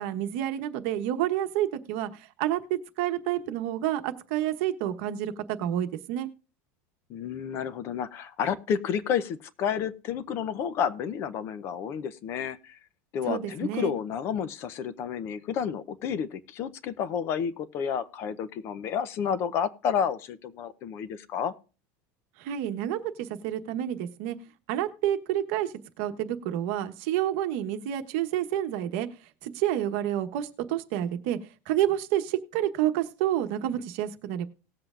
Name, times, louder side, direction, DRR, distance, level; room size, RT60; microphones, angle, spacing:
voice 1, 0.0-6.3 13.3-13.9 22.4-24.4 24.7-29.1 29.4-31.4 31.7-34.5, right 12 dB, 55° right, 8 dB, 1.1 m, -29 dB
voice 2, 7.1-12.8 13.1-21.5, left 7 dB, 35° left, 15 dB, 0.6 m, -30 dB
18.5 x 7.8 x 2.5 m, 0.35 s
supercardioid pair, 170°, 8 cm